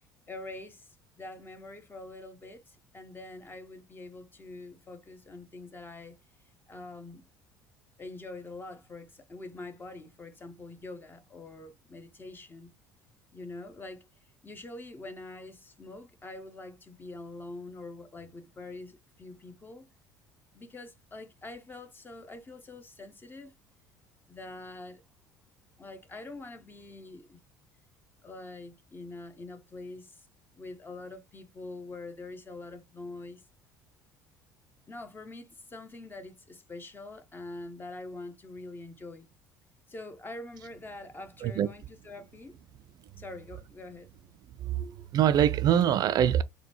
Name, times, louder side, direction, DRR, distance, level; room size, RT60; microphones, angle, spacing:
voice 1, 0.3-6.2 6.7-7.3 8.0-12.7 13.3-14.1 14.4-19.9 20.5-23.5 24.3-25.0 25.8-27.4 28.2-30.3 30.6-33.4 34.9-39.3 39.9-42.6 43.1-44.1, left 2 dB, 20° left, 0.8 m, -44 dB
voice 2, 44.6-46.4, right 10 dB, 45° right, 0.3 m, -24 dB
3.8 x 2.2 x 2.9 m
hypercardioid pair, 60°, 9 cm